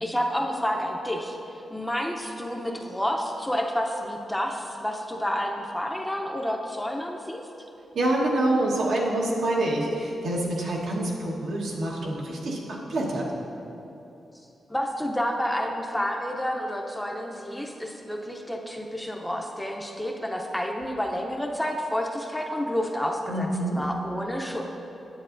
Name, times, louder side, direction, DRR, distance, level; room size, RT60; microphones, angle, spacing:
voice 1, 0.0-1.4 1.7-7.4 14.7-23.5 23.7-24.7, equal, 5° left, 1 dB, 0.6 m, -29 dB
voice 2, 7.9-13.3 23.3-23.8, right 1 dB, 75° right, -3 dB, 1.3 m, -26 dB
9.8 x 7.8 x 2.6 m, 2.9 s
cardioid pair, 90°, 0 cm